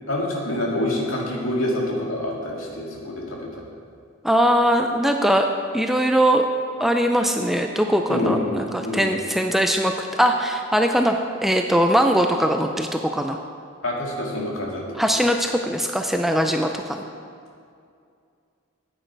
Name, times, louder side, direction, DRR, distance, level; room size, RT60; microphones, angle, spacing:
voice 1, 0.1-3.6 8.1-9.1 13.8-14.8, left 1 dB, 75° left, -2 dB, 2.0 m, -26 dB
voice 2, 4.2-5.5 5.7-6.5 6.8-13.4 14.9-17.0, equal, ahead, 4 dB, 0.4 m, -21 dB
10.0 x 8.9 x 4.6 m, 2.3 s
head